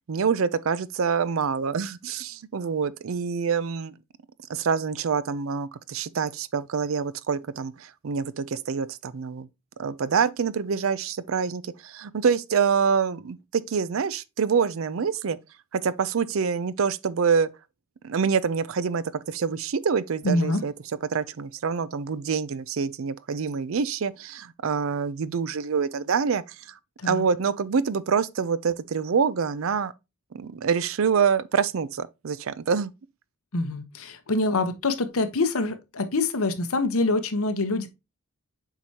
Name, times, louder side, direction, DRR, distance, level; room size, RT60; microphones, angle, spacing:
voice 1, 0.1-3.9 4.5-9.5 9.8-15.4 15.7-17.5 18.0-20.7 21.1-26.7 27.0-29.9 30.3-32.9, right 6 dB, 60° right, 0.4 m, -26 dB
voice 2, 20.2-20.6 27.0-27.2 33.5-37.9, left 2 dB, 70° left, 1.0 m, -25 dB
7.6 x 4.6 x 2.8 m
head